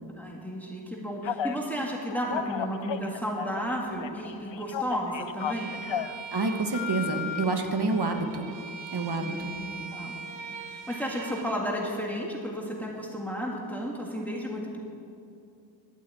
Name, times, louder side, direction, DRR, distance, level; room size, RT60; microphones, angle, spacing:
voice 1, 0.2-5.8 8.1-8.2 9.2-10.1 10.9-14.8, equal, 5° left, -2 dB, 2.0 m, -33 dB
Telephone, 1.2-1.6 2.1-3.7 4.0-6.2 6.7-7.4, left 9 dB, 80° left, 0.6 m, -33 dB
Bowed string instrument, 5.4-11.6, right 5 dB, 80° right, 0.8 m, -41 dB
voice 2, 6.3-8.5 8.9-9.5, right 3 dB, 60° right, 4 dB, 1.2 m, -28 dB
12.0 x 8.7 x 9.0 m, 2.6 s
wide cardioid pair, 55°, 44 cm